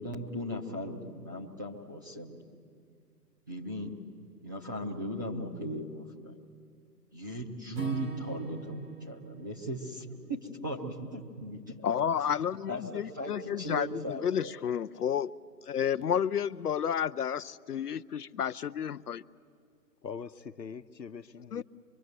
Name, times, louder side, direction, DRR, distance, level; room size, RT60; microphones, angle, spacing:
voice 1, 0.0-2.4 3.5-4.0 4.4-6.3 7.1-10.4 10.6-11.8 12.7-14.5, right 1 dB, 15° right, 0.6 m, -37 dB
Acoustic guitar / Strum, 7.7-12.0, right 4 dB, 80° right, 2.8 m, -46 dB
voice 2, 11.8-15.3 15.7-19.2 21.5-21.6, left 8 dB, 65° left, 0.6 m, -31 dB
voice 3, 20.0-21.6, left 6 dB, 85° left, 1.0 m, -42 dB
24.5 x 23.0 x 7.9 m
figure-of-eight pair, 145°, 49 cm